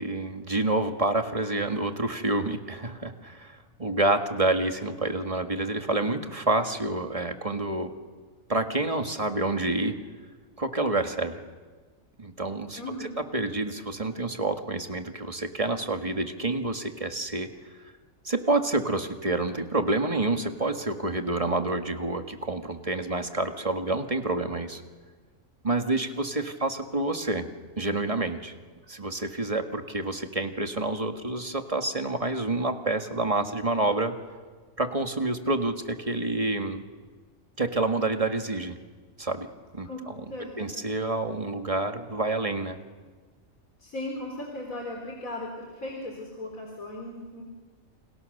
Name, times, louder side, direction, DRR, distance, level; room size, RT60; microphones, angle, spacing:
voice 1, 0.0-7.9 8.5-10.0 10.6-11.4 12.2-17.5 18.3-24.8 25.6-27.5 27.8-28.5 28.9-34.1 34.8-36.8 37.6-38.8 39.2-39.5 39.7-40.3 40.6-42.8, right 2 dB, 25° right, 6 dB, 1.8 m, -28 dB
voice 2, 12.8-13.1 39.8-40.0 40.3-40.7 43.8-47.4, left 1 dB, 85° left, 0 dB, 4.2 m, -37 dB
30.0 x 29.0 x 6.7 m, 1.4 s
omnidirectional pair, 1.4 m